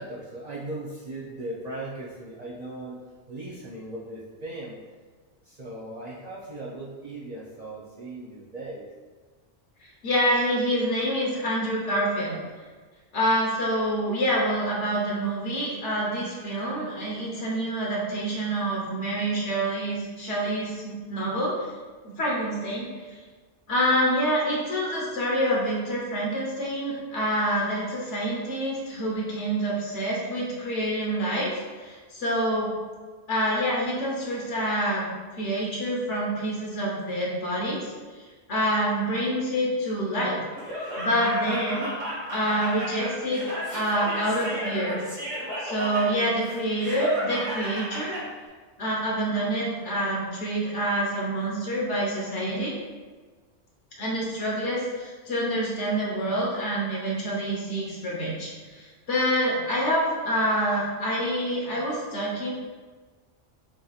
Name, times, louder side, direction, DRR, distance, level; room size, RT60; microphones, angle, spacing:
voice 1, 0.0-3.0 3.3-4.8 5.4-8.9, right 2 dB, 45° right, -7 dB, 0.6 m, -38 dB
voice 2, 10.0-12.4 13.1-21.7 22.0-23.2 23.7-32.7 33.3-35.1 35.3-37.9 38.5-40.4 41.0-41.9 42.3-43.4 43.7-45.0 45.6-48.2 48.8-52.7 54.0-62.5, equal, 70° left, -4 dB, 1.4 m, -27 dB
Laughter, 40.5-48.2, equal, 85° right, 1.8 m, -33 dB
6.1 x 2.9 x 2.4 m, 1.4 s
omnidirectional pair, 1.3 m